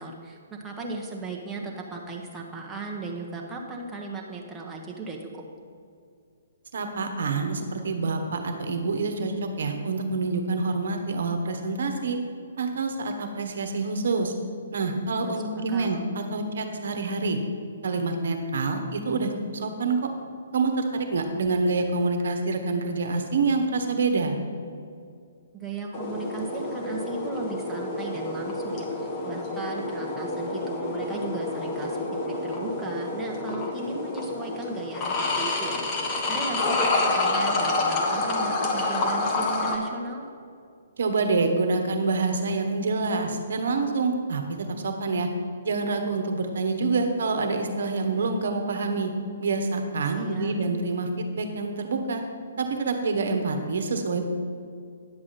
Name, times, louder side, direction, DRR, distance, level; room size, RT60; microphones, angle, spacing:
voice 1, 0.0-5.4 15.2-16.0 25.5-32.0 32.4-40.2 50.2-50.5, right 3 dB, 10° right, -2 dB, 1.3 m, -36 dB
voice 2, 6.7-12.2 12.6-14.3 14.7-17.4 17.8-20.0 20.5-24.3 41.0-44.4 44.8-45.3 45.6-49.1 49.4-51.1 51.3-52.2 52.6-54.2, right 3 dB, 60° right, 5 dB, 1.2 m, -27 dB
sound 1, 25.9-39.8, left 2 dB, 30° left, 1.3 m, -28 dB
10.5 x 7.5 x 4.2 m, 2.3 s
figure-of-eight pair, 130°, 0 cm